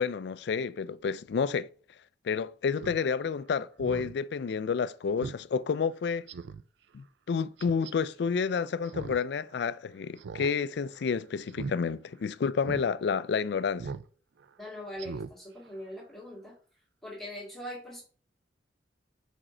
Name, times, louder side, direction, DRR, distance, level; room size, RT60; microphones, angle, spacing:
voice 1, 0.0-1.7 2.2-6.3 6.9-13.9, left 6 dB, 60° left, 0.3 m, -30 dB
Speech synthesizer, 2.8-3.0 3.4-3.5 3.8-4.1 4.5-4.6 5.2-5.4 5.8-5.9 6.3-6.6 7.6-7.9 8.8-9.2 9.5-9.6 10.2-10.5 10.8-11.0 11.5-11.8 12.2-12.3 12.6-12.8 13.8-14.1 14.4-14.5 15.0-15.3 15.7-15.8, right 4 dB, 65° right, 0.4 m, -39 dB
voice 2, 14.6-16.6 17.0-18.0, left 1 dB, ahead, 1.9 m, -41 dB
4.9 x 4.3 x 4.9 m
head